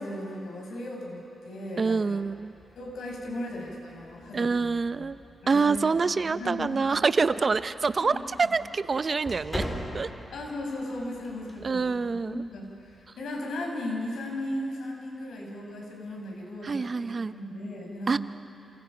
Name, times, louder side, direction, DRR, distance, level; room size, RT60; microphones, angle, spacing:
voice 1, 0.0-2.2 2.8-5.1 5.4-6.9 8.0-8.5 10.3-18.2, left 1 dB, 85° left, 0 dB, 5.6 m, -37 dB
voice 2, 1.8-2.5 4.3-5.2 5.5-9.6 9.9-10.1 11.6-12.4 16.6-17.3 18.1-18.2, right 4 dB, 45° right, 13 dB, 0.7 m, -26 dB
sound 1, 2.2-13.1, left 1 dB, 20° left, 5.1 m, -43 dB
29.5 x 28.5 x 5.2 m, 2.9 s
cardioid pair, 70°, 0 cm